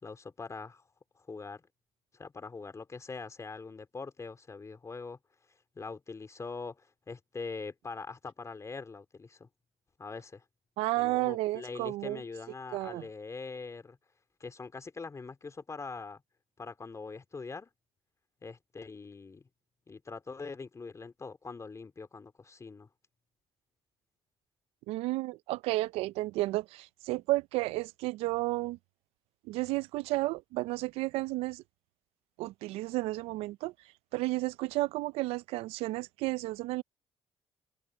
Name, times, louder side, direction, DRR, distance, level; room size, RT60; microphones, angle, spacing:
voice 1, 0.0-0.8 1.3-1.6 2.1-5.2 5.7-9.5 10.0-10.4 11.0-14.0 14.4-16.2 16.6-17.7 18.4-19.4 19.9-22.9, left 4 dB, 30° left, 3.3 m, -43 dB
voice 2, 10.8-12.2 12.7-13.1 24.9-28.8 29.4-31.6 32.4-33.7 34.1-36.8, right 20 dB, 85° right, 0.5 m, -32 dB
supercardioid pair, 75°, 10 cm